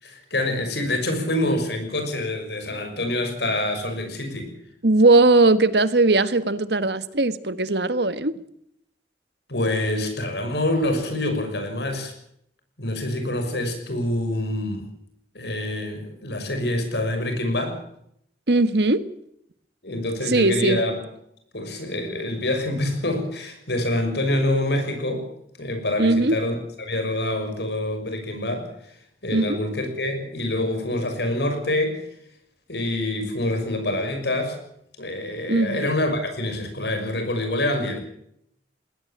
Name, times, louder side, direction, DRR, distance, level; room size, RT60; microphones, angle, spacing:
voice 1, 0.0-4.5 9.5-12.1 12.8-14.9 15.3-17.8 19.8-21.0 21.5-25.3 25.6-29.0 29.2-32.1 32.7-34.6 35.0-38.0, left 1 dB, 75° left, 6.2 m, -26 dB
voice 2, 4.8-8.3 18.5-19.0 20.3-20.8 26.0-26.3 29.3-29.6 35.5-35.9, right 2 dB, 75° right, 1.5 m, -19 dB
21.0 x 18.0 x 7.4 m
head